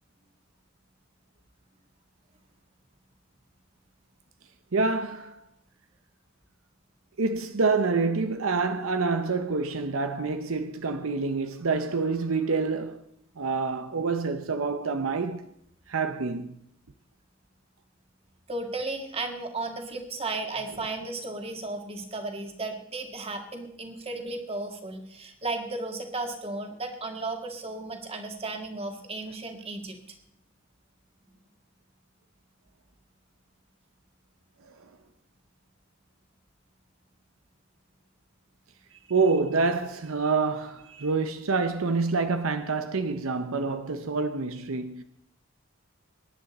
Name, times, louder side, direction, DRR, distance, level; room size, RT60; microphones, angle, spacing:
voice 1, 4.7-5.4 7.2-13.0 13.4-15.5 15.9-16.6 39.1-45.0, right 4 dB, 80° right, 0.8 m, -27 dB
voice 2, 18.5-30.0 38.9-39.0 40.9-41.1, right 2 dB, 30° right, 1.8 m, -34 dB
22.5 x 10.5 x 4.2 m
head